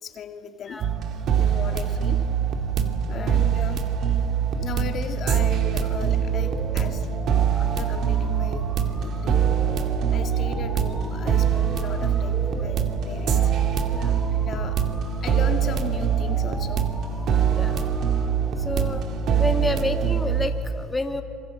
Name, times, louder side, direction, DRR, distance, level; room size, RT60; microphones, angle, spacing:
voice 1, 0.0-0.9 1.4-2.3 3.1-4.2 4.6-7.1 7.6-9.5 10.1-13.5 14.4-14.8 15.2-16.9, left 7 dB, 45° left, 6 dB, 1.8 m, -37 dB
sound 1, 0.8-20.5, right 8 dB, 55° right, 2.3 m, -23 dB
sound 2, 6.3-18.3, equal, ahead, 2.8 m, -42 dB
voice 2, 13.9-14.2 17.5-17.9 18.6-19.0 19.4-21.2, left 2 dB, 15° left, 5 dB, 1.9 m, -29 dB
26.0 x 23.5 x 7.7 m, 2.8 s
supercardioid pair, 95°, 0 cm